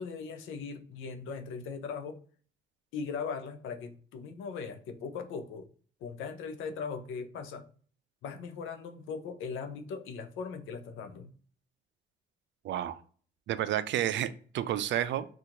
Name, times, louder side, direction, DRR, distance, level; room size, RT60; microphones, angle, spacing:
voice 1, 0.0-2.2 2.9-5.7 6.0-7.7 8.2-11.3, left 5 dB, 85° left, 8 dB, 0.6 m, -39 dB
voice 2, 12.6-13.0 13.5-15.3, right 11 dB, 70° right, 13 dB, 0.4 m, -30 dB
2.8 x 2.4 x 3.7 m, 0.44 s
cardioid pair, 90°, 20 cm